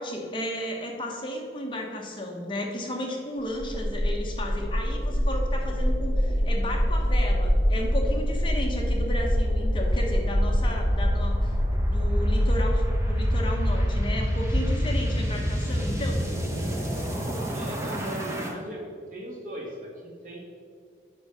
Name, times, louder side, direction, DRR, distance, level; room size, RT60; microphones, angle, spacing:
voice 1, 0.0-16.3, left 1 dB, 30° left, 0 dB, 1.0 m, -33 dB
sound 1, 3.5-18.5, equal, 15° right, 1.1 m, -25 dB
voice 2, 17.5-18.8 19.1-20.4, right 1 dB, 45° right, -2 dB, 1.9 m, -38 dB
7.8 x 6.2 x 5.5 m, 2.2 s
head